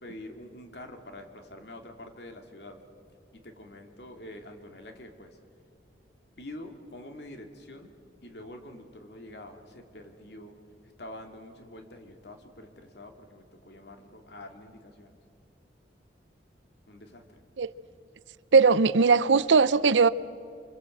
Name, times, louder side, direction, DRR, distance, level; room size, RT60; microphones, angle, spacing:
voice 1, 0.0-2.8 3.3-5.4 6.4-7.9 8.2-10.6 10.8-15.1 16.9-17.4, left 1 dB, 65° left, 2.5 m, -46 dB
voice 2, 18.5-20.1, right 4 dB, 85° right, 0.6 m, -19 dB
27.0 x 25.5 x 7.9 m
head